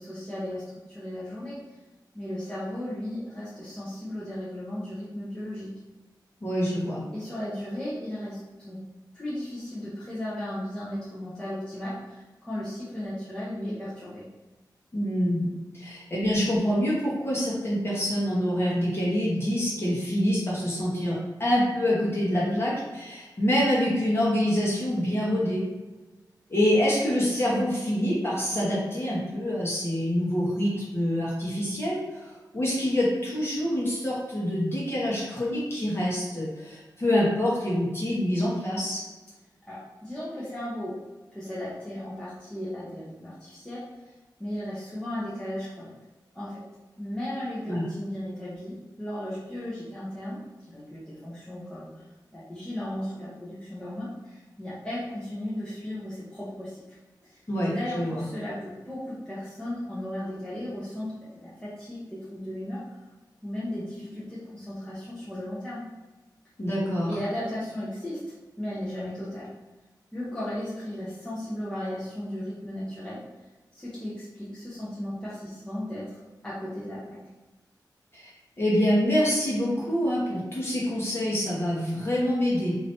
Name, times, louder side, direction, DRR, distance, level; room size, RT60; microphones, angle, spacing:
voice 1, 0.0-1.8 2.1-5.7 7.1-8.8 9.1-14.3 22.3-22.7 39.7-41.0 41.3-44.1 44.4-45.9 46.3-46.6 47.0-50.4 50.7-52.0 52.3-57.0 57.2-63.0 63.4-65.8 67.1-69.5 70.1-73.2 73.7-76.2 76.4-77.2, left 1 dB, 10° left, -10 dB, 0.9 m, -35 dB
voice 2, 6.4-7.0 14.9-25.6 26.5-39.0 47.7-47.8 57.5-58.2 66.6-67.1 78.1-78.3 78.6-82.8, equal, 35° left, -7 dB, 1.1 m, -26 dB
2.8 x 2.6 x 3.5 m, 1.2 s
wide cardioid pair, 80°, 8 cm